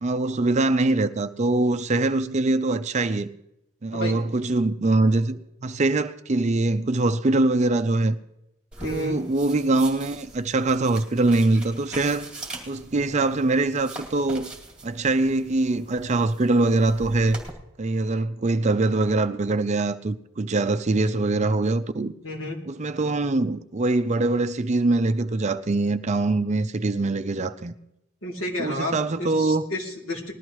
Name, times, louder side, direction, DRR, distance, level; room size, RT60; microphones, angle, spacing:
voice 1, 0.0-3.3 3.8-8.2 8.8-12.3 12.7-14.5 14.8-17.4 17.8-22.1 22.7-27.7 28.6-29.6, right 2 dB, 30° right, 0.5 m, -23 dB
sound 1, 8.7-17.5, right 2 dB, 5° right, 2.5 m, -42 dB
voice 2, 8.8-9.2 22.2-22.6 28.2-30.3, left 1 dB, 65° left, 3.0 m, -31 dB
20.0 x 13.0 x 3.1 m
head